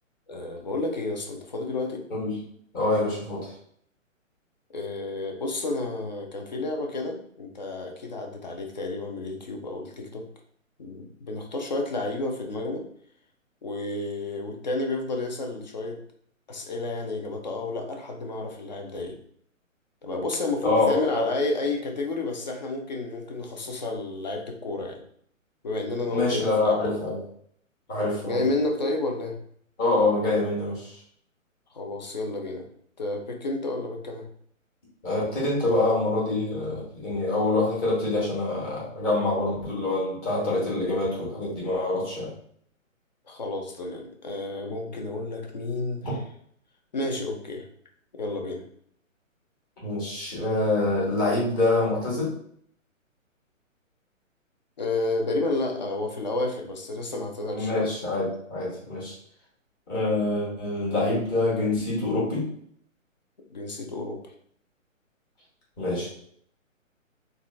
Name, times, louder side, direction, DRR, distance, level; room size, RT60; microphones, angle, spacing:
voice 1, 0.3-2.0 4.7-10.2 10.8-12.9 13.6-16.0 16.5-19.2 20.0-25.0 25.6-27.1 28.2-29.4 31.7-32.7 33.0-34.2 43.3-46.1 46.9-47.6 48.1-48.6 54.8-57.9 63.5-64.3, left 2 dB, 35° left, 2 dB, 0.4 m, -31 dB
voice 2, 2.7-3.5 20.6-21.2 26.1-27.2 27.9-28.4 29.8-31.0 35.0-42.3 46.0-46.1 49.8-52.3 57.5-59.1 59.9-62.5 65.8-66.1, left 2 dB, 15° left, -6 dB, 0.8 m, -25 dB
3.7 x 2.2 x 2.3 m, 0.63 s
hypercardioid pair, 145°, 40 cm